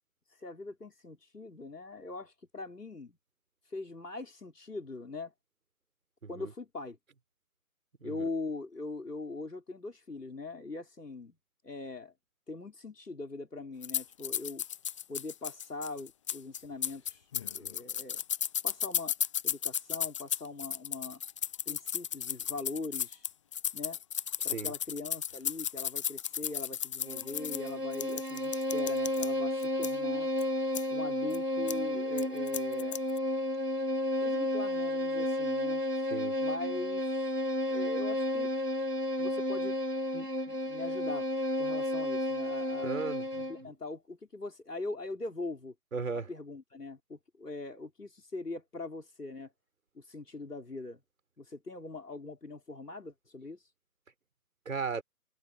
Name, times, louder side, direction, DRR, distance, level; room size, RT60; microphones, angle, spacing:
voice 1, 0.3-3.2 3.6-5.3 6.3-7.0 8.0-11.4 11.6-12.1 12.5-14.6 15.1-18.2 18.6-19.2 19.4-21.2 21.7-23.3 23.7-24.0 24.4-30.3 30.9-33.0 34.2-35.8 36.4-37.3 37.6-38.5 39.2-39.8 40.1-41.3 41.6-42.9 43.5-45.7 46.1-49.5 49.9-51.0 51.4-53.7, left 3 dB, 80° left, 4.8 m, -41 dB
sound 1, 13.8-29.3 29.6-29.9 30.4-30.5 30.7-30.8 31.3-31.4 31.7-31.8 32.2-33.2, left 9 dB, 20° left, 1.1 m, -34 dB
Bowed string instrument, 27.0-43.7, left 1 dB, 85° right, 3.9 m, -32 dB
voice 2, 42.8-43.5 45.9-46.3 54.7-55.0, right 5 dB, 55° right, 5.7 m, -36 dB
figure-of-eight pair, 145°, 46 cm